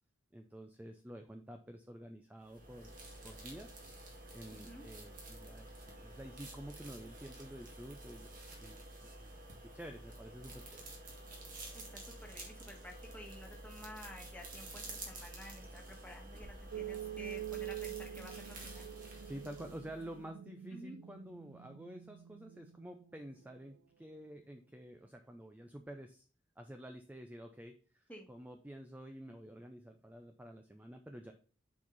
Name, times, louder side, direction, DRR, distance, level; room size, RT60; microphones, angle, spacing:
voice 1, 0.3-3.0 3.2-3.8 4.3-8.3 8.6-8.8 9.2-10.8 19.2-26.3 26.6-31.3, right 1 dB, 10° right, 5 dB, 0.5 m, -50 dB
sound 1, 2.4-20.3, right 2 dB, 45° right, 2.0 m, -50 dB
voice 2, 4.5-4.9 11.7-18.8 20.7-21.0 28.1-28.3, left 1 dB, 10° left, 1 dB, 1.5 m, -52 dB
sound 2, 16.7-23.6, right 12 dB, 85° right, 0.3 m, -46 dB
7.3 x 4.5 x 4.0 m, 0.39 s
head